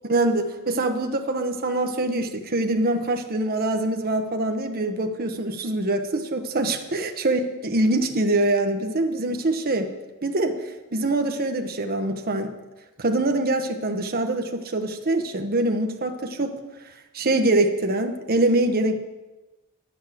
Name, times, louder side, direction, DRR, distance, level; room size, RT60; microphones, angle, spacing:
voice 1, 0.1-9.9 10.2-10.6 10.9-12.5 13.0-16.5 17.1-19.0, right 2 dB, 45° right, 5 dB, 0.9 m, -24 dB
10.0 x 7.0 x 7.6 m, 1.1 s
head